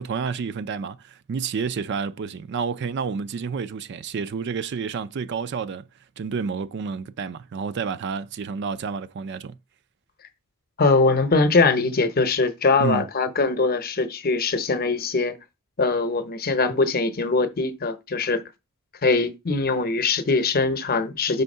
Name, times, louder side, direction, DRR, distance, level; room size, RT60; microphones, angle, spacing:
voice 1, 0.0-5.9 6.2-9.6 12.8-13.1, right 5 dB, 50° right, 0.4 m, -29 dB
voice 2, 10.8-15.4 15.8-18.4 19.0-21.4, left 3 dB, 45° left, 0.8 m, -22 dB
5.6 x 3.6 x 5.4 m
head